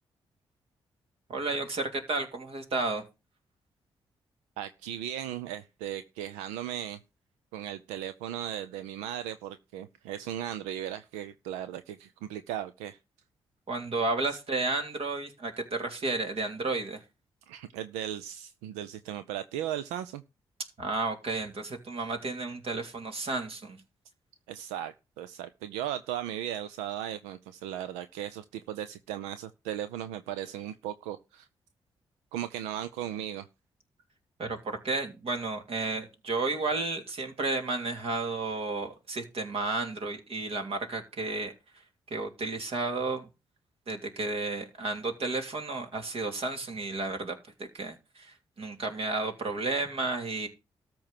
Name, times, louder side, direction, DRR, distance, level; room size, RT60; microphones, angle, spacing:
voice 1, 1.3-3.0 13.7-17.0 20.8-23.8 34.4-41.8 42.1-43.3 43.9-50.5, right 3 dB, 60° right, 2.8 m, -32 dB
voice 2, 4.6-7.0 7.5-13.0 17.5-20.2 24.5-31.5 32.3-33.5, right 11 dB, 90° right, 0.5 m, -37 dB
13.5 x 4.6 x 7.3 m
hypercardioid pair, 45°, 11 cm